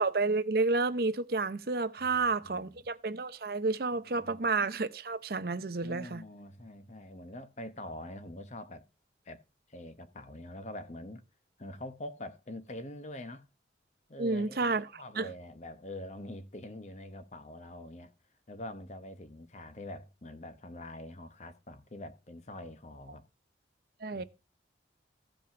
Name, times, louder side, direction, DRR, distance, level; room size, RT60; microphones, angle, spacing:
voice 1, 0.0-6.2 14.2-15.3 24.0-24.2, right 3 dB, 55° right, 0.7 m, -30 dB
voice 2, 2.0-2.8 4.1-4.5 5.8-8.9 9.2-9.4 9.7-11.2 11.6-13.5 14.1-18.1 18.5-23.2 24.1-24.3, left 1 dB, 40° left, 1.0 m, -45 dB
15.0 x 5.3 x 5.8 m
head